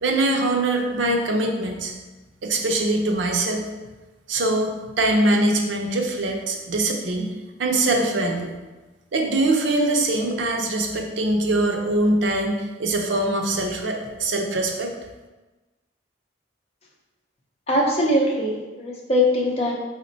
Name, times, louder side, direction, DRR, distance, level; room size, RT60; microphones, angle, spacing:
voice 1, 0.0-1.9 2.4-3.6 4.3-7.3 7.6-8.5 9.1-14.9, right 2 dB, 90° right, 2 dB, 0.6 m, -23 dB
voice 2, 17.7-19.7, left 1 dB, 35° left, -1 dB, 0.6 m, -21 dB
4.2 x 2.1 x 3.9 m, 1.2 s
head